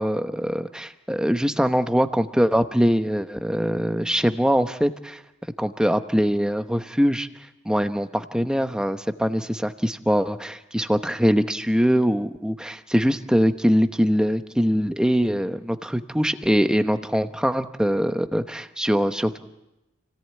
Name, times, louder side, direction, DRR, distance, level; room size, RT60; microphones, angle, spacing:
voice 1, 0.0-5.2 5.6-7.3 7.6-19.4, equal, 5° right, 8 dB, 0.9 m, -22 dB
29.0 x 17.5 x 9.3 m, 0.98 s
head